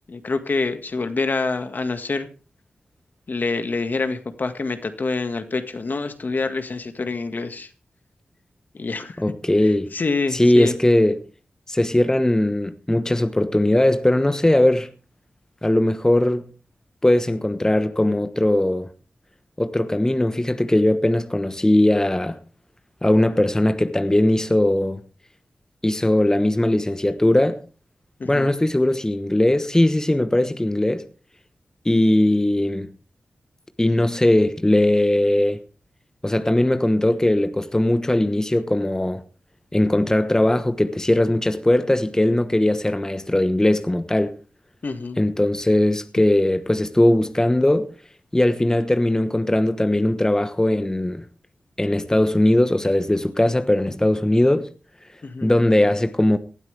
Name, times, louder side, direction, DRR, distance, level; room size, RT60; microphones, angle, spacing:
voice 1, 0.0-2.3 3.3-7.7 8.7-9.2 9.6-10.7 28.2-28.5 44.8-45.2 55.2-55.5, left 3 dB, 55° left, 1.8 m, -26 dB
voice 2, 9.2-9.9 10.3-11.2 11.7-14.9 15.6-16.5 17.0-18.9 19.6-22.4 23.0-25.0 25.8-27.6 28.2-31.1 31.8-32.9 33.8-35.6 36.2-39.2 39.7-44.4 45.2-47.9 48.3-51.2 51.8-54.7 55.4-56.4, left 1 dB, 15° left, 1.1 m, -19 dB
19.0 x 12.5 x 3.4 m
cardioid pair, 50°, 4 cm